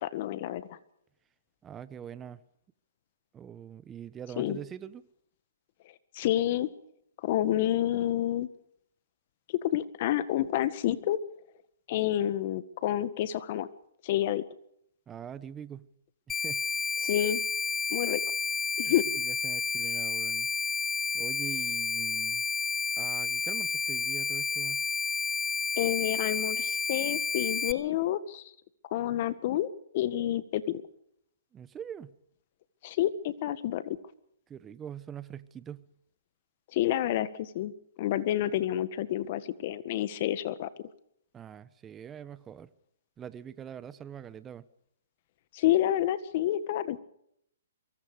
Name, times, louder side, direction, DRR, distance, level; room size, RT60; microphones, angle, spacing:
voice 1, 0.0-0.8 4.4-4.6 6.1-6.7 7.2-8.5 9.6-11.2 11.9-13.7 14.0-14.4 17.0-17.4 17.9-18.2 18.8-19.0 25.7-28.4 28.9-30.8 32.8-34.0 36.7-37.7 38.0-40.7 45.5-47.0, left 12 dB, 45° left, 1.7 m, -29 dB
voice 2, 1.6-2.4 3.3-5.0 15.1-15.9 16.3-16.6 19.2-20.5 21.1-22.4 23.0-24.8 31.5-32.1 34.5-35.8 41.3-42.7 43.2-44.6, right 9 dB, 15° right, 1.1 m, -43 dB
sound 1, 16.3-27.7, left 4 dB, 15° left, 0.8 m, -31 dB
23.5 x 23.5 x 5.1 m
hypercardioid pair, 140°, 0 cm